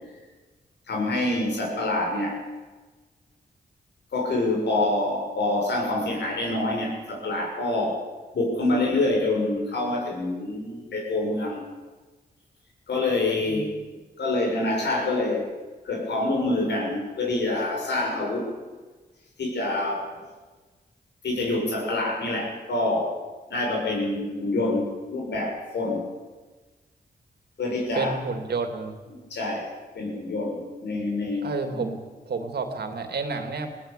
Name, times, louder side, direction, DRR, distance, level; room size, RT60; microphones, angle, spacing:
voice 1, 0.9-2.4 4.1-8.0 8.3-11.6 12.9-13.7 14.2-15.5 15.8-18.6 19.4-20.2 21.2-23.2 23.5-26.0 27.6-28.2 29.3-31.9, left 2 dB, 85° left, 0 dB, 6.9 m, -26 dB
voice 2, 28.0-29.0 31.4-32.0 32.3-33.7, right 4 dB, 70° right, 6 dB, 3.0 m, -30 dB
20.5 x 17.5 x 8.7 m, 1.3 s
cardioid pair, 70°, 17 cm